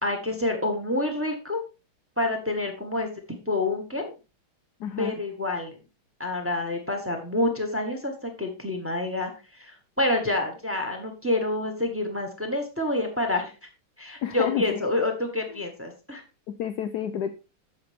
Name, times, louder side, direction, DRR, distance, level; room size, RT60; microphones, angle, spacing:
voice 1, 0.0-1.6 2.2-4.1 5.0-5.8 6.2-13.5 14.0-16.2, left 2 dB, 5° right, 4 dB, 1.4 m, -28 dB
voice 2, 4.8-5.2 14.2-14.8 16.5-17.3, left 9 dB, 70° left, 10 dB, 0.9 m, -30 dB
8.6 x 7.4 x 3.5 m, 0.31 s
omnidirectional pair, 2.3 m